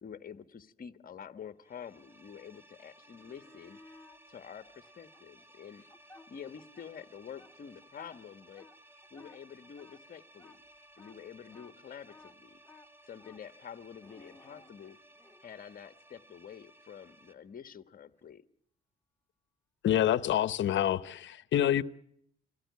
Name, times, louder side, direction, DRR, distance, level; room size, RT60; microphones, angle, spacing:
voice 1, 0.0-3.8 4.3-5.8 6.3-8.6 9.1-10.6 11.0-12.6 13.0-15.0 15.4-18.4, left 8 dB, 45° left, 1.3 m, -48 dB
sound 1, 1.6-17.3, right 1 dB, 10° right, 2.4 m, -59 dB
sound 2, 3.0-4.2 4.8-6.9 7.2-15.4 18.2-18.3, left 3 dB, 10° left, 2.3 m, -58 dB
voice 2, 19.8-21.8, left 11 dB, 70° left, 0.9 m, -27 dB
26.0 x 17.5 x 9.4 m
cardioid pair, 90°, 20 cm